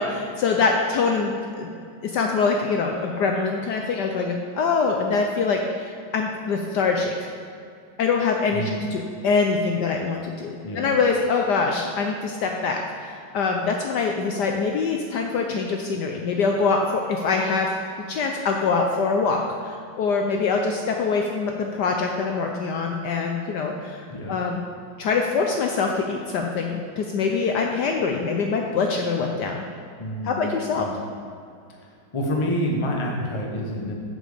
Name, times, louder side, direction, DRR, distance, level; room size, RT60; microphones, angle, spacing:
voice 1, 0.0-1.7 2.0-7.1 8.0-17.7 18.1-24.0 24.3-24.6 25.0-29.6 30.2-30.9, left 4 dB, 70° left, 2 dB, 1.1 m, -24 dB
voice 2, 30.0-30.4 30.7-31.0 32.1-33.9, equal, 25° left, 0 dB, 0.7 m, -27 dB
7.5 x 7.1 x 5.0 m, 2.4 s
omnidirectional pair, 2.2 m